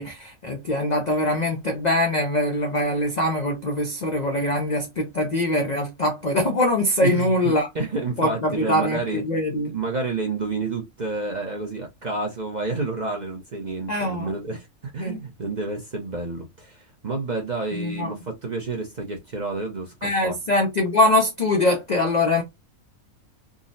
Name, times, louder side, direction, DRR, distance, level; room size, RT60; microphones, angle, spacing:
voice 1, 0.0-7.7 8.2-9.7 13.9-14.3 15.0-15.2 17.7-18.1 20.0-22.4, left 1 dB, 70° left, 0.4 m, -23 dB
voice 2, 7.7-9.2 9.7-14.7 14.9-20.3, right 3 dB, 45° right, 0.6 m, -29 dB
3.7 x 2.0 x 2.5 m
omnidirectional pair, 1.5 m